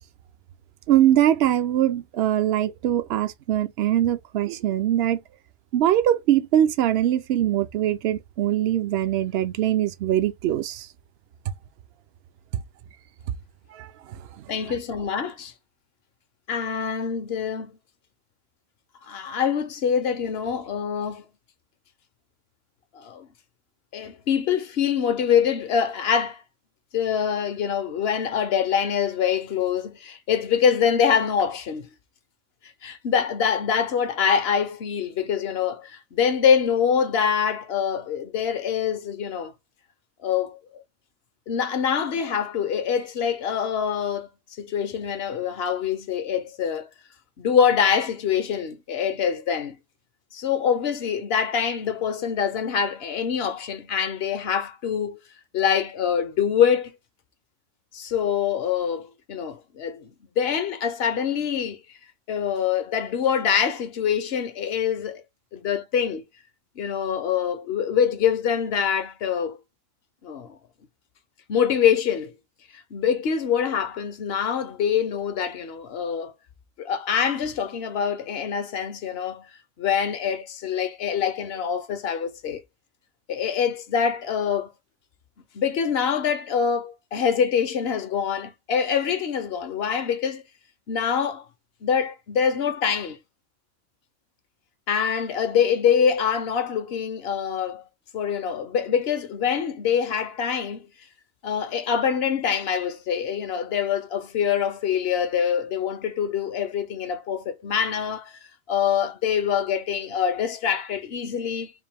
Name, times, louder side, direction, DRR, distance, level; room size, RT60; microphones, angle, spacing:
voice 1, 0.9-5.2 5.7-10.9 13.7-14.2 14.7-14.8, right 12 dB, 65° right, 0.7 m, -22 dB
voice 2, 14.5-15.5 16.5-17.7 19.1-21.3 22.9-23.3 23.9-26.4 26.9-31.9 32.8-39.5 40.2-40.8 41.5-44.3 44.6-46.9 47.4-49.8 50.3-55.2 55.5-56.9 57.9-60.1 60.4-61.8 62.3-65.2 65.5-66.2 66.8-69.6 70.2-70.5 71.5-72.4 72.7-76.3 76.8-79.5 79.8-82.6 83.3-84.7 85.5-90.4 90.9-91.5 91.8-93.2 94.9-97.8 98.1-100.8 101.4-108.4 108.7-111.7, left 7 dB, 60° left, 0.8 m, -25 dB
3.6 x 2.6 x 3.3 m
omnidirectional pair, 1.4 m